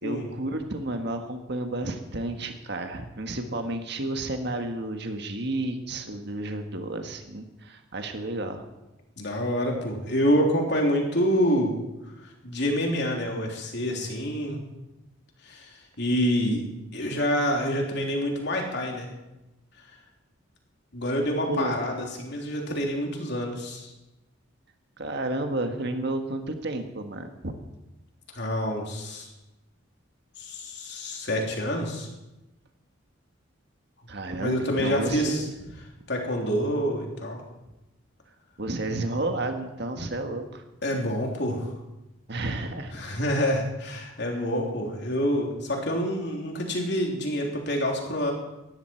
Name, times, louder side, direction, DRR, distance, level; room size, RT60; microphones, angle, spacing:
voice 1, 0.0-8.6 21.5-21.7 25.0-27.5 34.1-35.5 38.6-40.6 42.3-42.9 44.3-44.5, right 2 dB, 55° right, 5 dB, 1.6 m, -31 dB
voice 2, 9.2-11.7 12.4-14.6 15.4-15.7 16.0-16.6 16.9-19.1 20.9-23.9 28.3-29.3 30.4-32.1 34.4-35.4 36.1-37.4 40.8-41.7 42.9-48.3, equal, 60° left, 0 dB, 3.4 m, -27 dB
18.5 x 14.5 x 4.6 m, 0.99 s
head